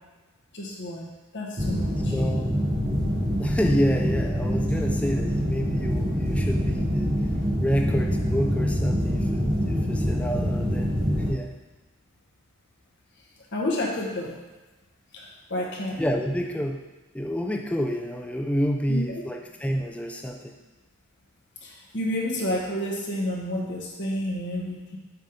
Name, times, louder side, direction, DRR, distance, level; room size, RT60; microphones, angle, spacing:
voice 1, 0.5-2.1 13.5-14.4 15.1-16.0 18.9-19.2 21.6-25.0, left 1 dB, 50° left, -2 dB, 1.3 m, -30 dB
sound 1, 1.6-11.3, equal, 40° right, 1.5 m, -25 dB
voice 2, 2.1-2.6 3.4-7.2 7.6-10.9 11.3-11.6 16.0-16.8 17.1-20.6, equal, 5° left, 2 dB, 0.4 m, -28 dB
7.4 x 3.6 x 5.2 m, 1.2 s
head